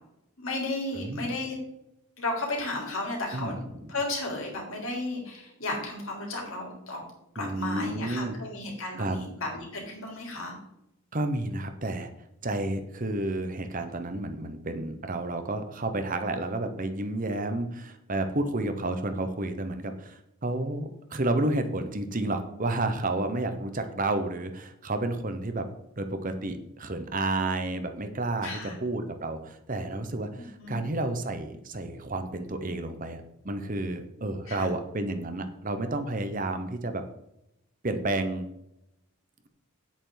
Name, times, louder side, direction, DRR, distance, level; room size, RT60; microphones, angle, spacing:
voice 1, 0.4-1.6 2.2-3.6 3.9-7.0 7.3-10.5 28.4-28.8 30.5-30.8 34.5-34.7, left 2 dB, 65° left, -1 dB, 3.7 m, -34 dB
voice 2, 0.9-1.3 3.3-3.9 7.4-8.4 9.0-9.2 11.1-12.1 12.4-25.7 26.0-37.0 37.8-38.5, right 2 dB, 35° right, 7 dB, 1.0 m, -31 dB
9.9 x 8.7 x 4.0 m, 0.82 s
head